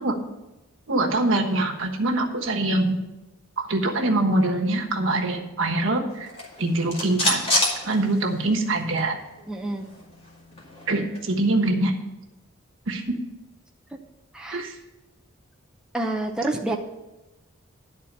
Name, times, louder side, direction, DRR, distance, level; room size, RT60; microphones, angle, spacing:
voice 1, 0.9-3.0 3.6-6.3 6.6-7.4 7.8-9.2 10.9-11.9 12.9-13.2 14.5-14.7, right 2 dB, 65° right, 2 dB, 1.3 m, -24 dB
sound 1, 6.2-8.7 9.0-9.1 9.4-11.3, left 1 dB, 30° left, 2.2 m, -28 dB
voice 2, 9.5-9.9 14.3-14.6 15.9-16.8, right 2 dB, 5° right, 0 dB, 0.5 m, -28 dB
11.0 x 4.2 x 7.4 m, 1.0 s
head